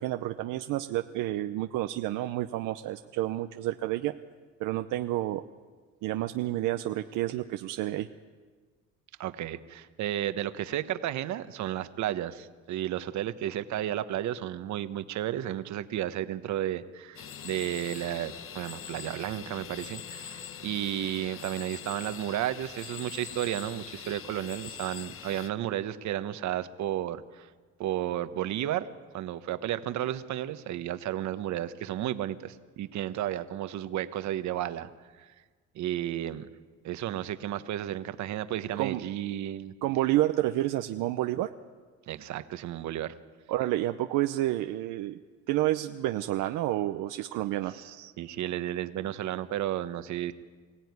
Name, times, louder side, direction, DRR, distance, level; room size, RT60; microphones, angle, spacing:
voice 1, 0.0-4.1 4.6-5.4 6.0-8.1 38.8-39.0 39.8-41.5 43.5-45.2 45.5-47.7, right 15 dB, 80° right, 7 dB, 0.8 m, -29 dB
voice 2, 9.2-27.5 27.8-28.9 29.1-34.9 35.2-35.3 35.7-36.5 36.8-39.7 42.1-43.1 47.7-50.3, right 12 dB, 65° right, 11 dB, 1.2 m, -33 dB
sound 1, 17.2-25.5, left 8 dB, 45° left, 1.1 m, -43 dB
24.0 x 16.5 x 9.5 m, 1.4 s
cardioid pair, 125°, 31 cm